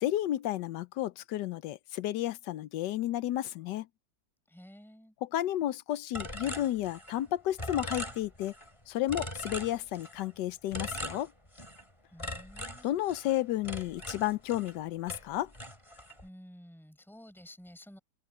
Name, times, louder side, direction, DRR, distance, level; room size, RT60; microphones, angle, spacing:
voice 1, 0.0-3.9 5.2-8.5 8.9-11.3 12.8-15.5, left 13 dB, 85° left, 1.3 m, -32 dB
voice 2, 4.5-5.1 12.1-12.9 16.2-18.0, equal, ahead, 6.0 m, -52 dB
sound 1, 6.1-7.3 7.6-8.7 9.1-10.3 10.7-11.9 12.2-14.8 15.1-16.3, equal, 15° left, 5.0 m, -41 dB
open air
omnidirectional pair, 1.9 m